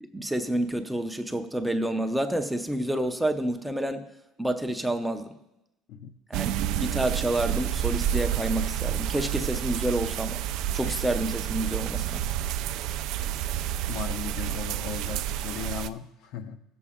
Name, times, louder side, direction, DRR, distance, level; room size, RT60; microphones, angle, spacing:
voice 1, 0.0-4.1 4.4-5.3 6.3-10.4 10.7-12.2, right 1 dB, 5° right, 0.5 m, -29 dB
sound 1, 6.3-15.9, right 11 dB, 65° right, 0.3 m, -29 dB
voice 2, 13.9-16.6, left 8 dB, 60° left, 0.7 m, -37 dB
15.5 x 7.0 x 3.6 m
cardioid pair, 135°, 0 cm